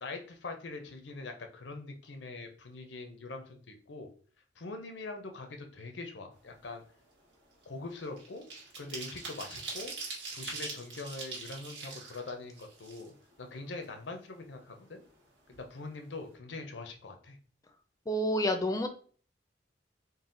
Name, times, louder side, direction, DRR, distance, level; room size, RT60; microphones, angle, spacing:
voice 1, 0.0-4.1 4.6-6.8 7.7-8.5 8.8-9.9 10.3-13.1 13.4-15.0 15.5-17.4, left 3 dB, 85° left, 5 dB, 0.7 m, -43 dB
sound 1, 6.4-6.7 7.0-13.4 13.8-13.9 14.2-15.2 15.5-15.7 16.0-16.3, right 4 dB, 85° right, 1.5 m, -43 dB
voice 2, 18.1-18.9, equal, 20° left, 6 dB, 0.5 m, -28 dB
4.0 x 2.2 x 3.9 m, 0.43 s
head